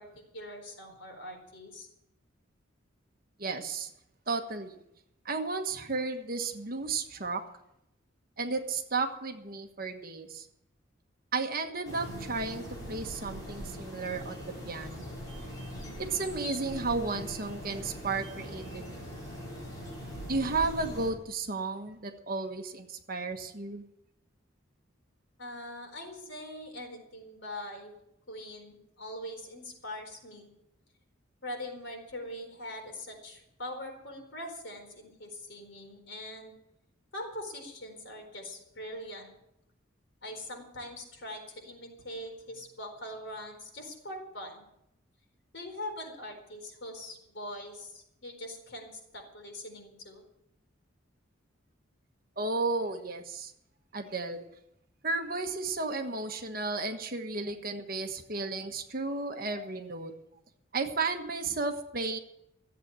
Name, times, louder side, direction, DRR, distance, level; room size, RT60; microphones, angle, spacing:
voice 1, 0.0-1.9 25.4-27.9 28.3-30.5 31.4-36.5 37.1-39.3 40.2-44.7 45.5-50.2, left 1 dB, 60° left, 2 dB, 4.3 m, -42 dB
voice 2, 3.4-3.9 4.3-4.8 5.2-7.4 8.4-10.5 11.3-15.1 16.0-19.0 20.3-23.8 52.4-53.5 53.9-54.4 55.0-60.1 60.7-62.2, right 3 dB, 45° right, 5 dB, 1.4 m, -33 dB
sound 1, 11.8-21.1, equal, 20° left, 4.9 m, -41 dB
14.5 x 8.2 x 8.8 m, 0.80 s
head